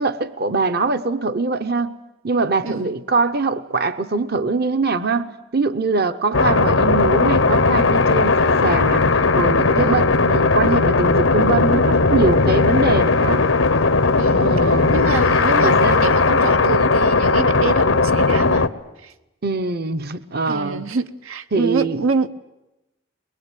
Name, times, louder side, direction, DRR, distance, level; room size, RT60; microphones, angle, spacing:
voice 1, 0.0-1.9 2.2-9.0 9.3-13.5 14.3-15.1 15.6-16.1 19.4-20.9 21.5-22.0, right 3 dB, 45° right, 12 dB, 0.8 m, -23 dB
voice 2, 2.6-3.0 9.8-10.2 14.2-14.5 14.9-18.7 19.0-19.1 20.5-22.3, right 4 dB, 80° right, 9 dB, 0.9 m, -26 dB
sound 1, 6.3-18.7, left 3 dB, 75° left, 1.0 m, -17 dB
22.5 x 22.0 x 9.1 m, 0.95 s
head